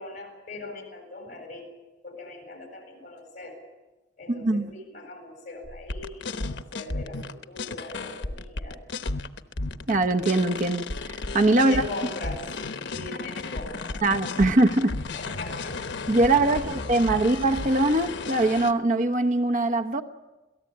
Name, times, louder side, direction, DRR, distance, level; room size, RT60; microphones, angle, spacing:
voice 1, 0.0-1.6 2.0-3.6 4.2-8.8 11.6-12.4 12.9-14.0 14.4-14.5 15.1-15.8 16.5-16.6, left 2 dB, 45° left, 7.9 m, -40 dB
voice 2, 4.3-4.7 9.9-11.8 14.0-14.9 16.1-20.0, right 2 dB, 45° right, 1.0 m, -22 dB
sound 1, 5.6-18.7, left 3 dB, 85° left, 1.1 m, -34 dB
28.0 x 18.0 x 8.6 m
head